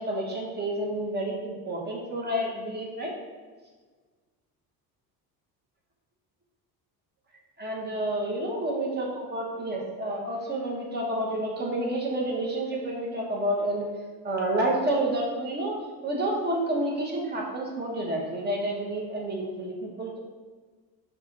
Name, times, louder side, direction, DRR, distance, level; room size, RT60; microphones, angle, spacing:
voice 1, 0.0-3.1 7.6-13.9 14.2-15.8 16.0-20.2, right 1 dB, 25° right, -1 dB, 0.9 m, -29 dB
4.8 x 2.4 x 3.8 m, 1.4 s
cardioid pair, 125°, 39 cm